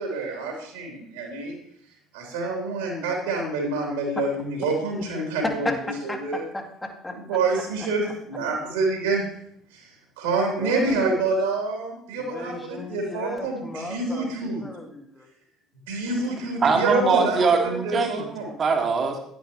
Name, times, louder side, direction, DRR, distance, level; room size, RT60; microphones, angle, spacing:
voice 1, 0.0-1.5 2.1-5.7 6.0-6.4 7.1-9.3 9.7-9.9 10.2-14.6 15.9-17.4 17.8-18.5, right 3 dB, 70° right, 0 dB, 2.8 m, -27 dB
voice 2, 5.4-5.8 6.1-7.2 8.1-8.2 10.6-11.2 12.2-15.3, left 2 dB, 15° left, 1 dB, 1.7 m, -34 dB
voice 3, 16.6-18.3 18.6-19.2, right 4 dB, 35° right, 3 dB, 1.8 m, -22 dB
10.5 x 10.5 x 3.0 m, 0.67 s
figure-of-eight pair, 55°, 0 cm